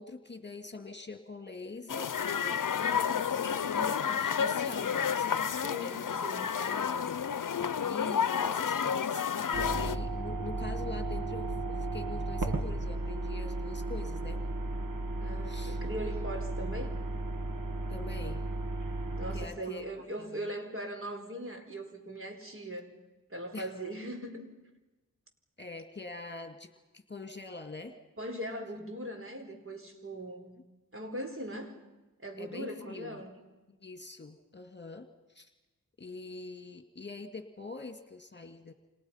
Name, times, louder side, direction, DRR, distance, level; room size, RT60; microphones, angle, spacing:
voice 1, 0.0-6.3 6.5-9.2 9.7-14.4 15.4-15.8 17.9-18.4 19.3-19.8 20.2-20.5 23.5-23.7 25.6-28.0 32.4-33.2 33.8-35.5 36.0-38.7, left 3 dB, 30° left, 6 dB, 2.1 m, -44 dB
sound 1, 1.9-10.0, left 7 dB, 70° left, 0.7 m, -30 dB
voice 2, 5.6-6.5 15.2-16.9 19.2-22.9 23.3-24.5 28.2-30.6 30.9-31.8 32.2-33.4, right 1 dB, 40° right, 4 dB, 4.5 m, -40 dB
sound 2, 9.5-19.5, right 2 dB, 70° right, 1.8 m, -34 dB
29.0 x 27.0 x 5.7 m, 1.1 s
cardioid pair, 45°, 33 cm